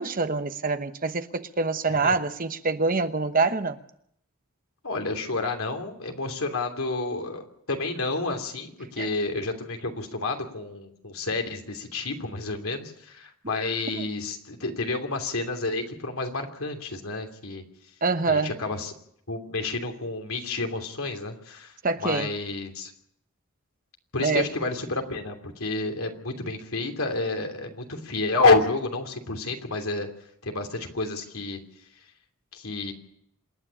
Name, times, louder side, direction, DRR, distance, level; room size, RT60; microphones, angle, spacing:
voice 1, 0.0-3.8 9.0-9.1 13.9-14.1 18.0-18.6 21.8-22.3 24.2-24.5, right 4 dB, 40° right, 1.0 m, -25 dB
voice 2, 4.8-7.4 7.7-17.6 18.3-18.9 19.3-21.7 22.0-22.9 24.1-30.1 30.4-31.6 32.5-32.9, left 3 dB, 75° left, 3.0 m, -29 dB
27.0 x 9.8 x 10.0 m
head